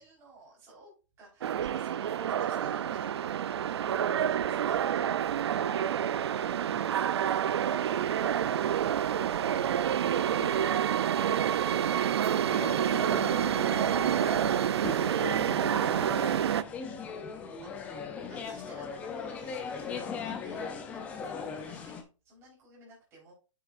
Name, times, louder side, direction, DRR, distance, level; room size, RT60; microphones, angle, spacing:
voice 1, 0.0-3.4 4.2-5.3 17.6-17.9 18.2-23.3, right 2 dB, 15° right, 4.0 m, -55 dB
sound 1, 1.4-16.6, right 9 dB, 50° right, 0.4 m, -28 dB
sound 2, 12.5-22.0, left 5 dB, 10° left, 0.5 m, -39 dB
voice 2, 14.3-17.2, right 4 dB, 35° right, 3.6 m, -49 dB
8.4 x 7.3 x 2.5 m
hypercardioid pair, 170°, 17 cm